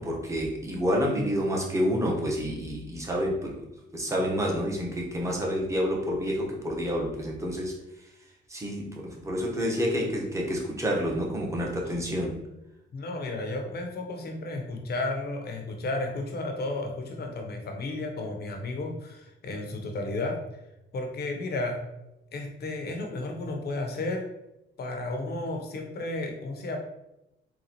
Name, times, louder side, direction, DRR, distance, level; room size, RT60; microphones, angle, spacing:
voice 1, 0.0-3.5 3.9-7.7 8.5-12.3, equal, 15° right, -2 dB, 0.9 m, -28 dB
voice 2, 9.6-9.9 12.9-20.4 20.9-21.8 22.3-24.3 24.8-26.8, left 2 dB, 55° left, 3 dB, 0.7 m, -33 dB
3.9 x 2.3 x 2.9 m, 0.91 s
cardioid pair, 90°, 20 cm